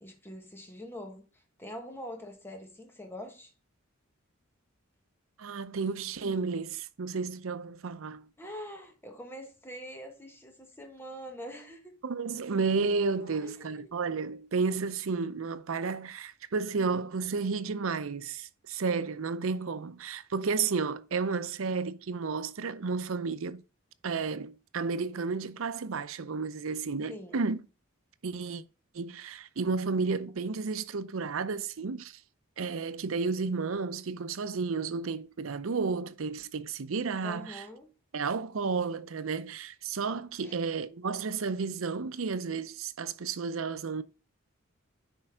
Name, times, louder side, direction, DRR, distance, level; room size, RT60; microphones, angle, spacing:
voice 1, 0.0-3.5 8.4-11.9 13.4-13.9 27.1-27.4 37.2-37.9 40.4-40.6, equal, 10° left, 1.5 m, -44 dB
voice 2, 5.4-8.3 12.0-23.6 24.0-27.6 28.2-28.6 28.9-32.2 32.6-37.6 38.1-44.0, right 4 dB, 80° right, 0.6 m, -32 dB
10.0 x 4.4 x 3.7 m
head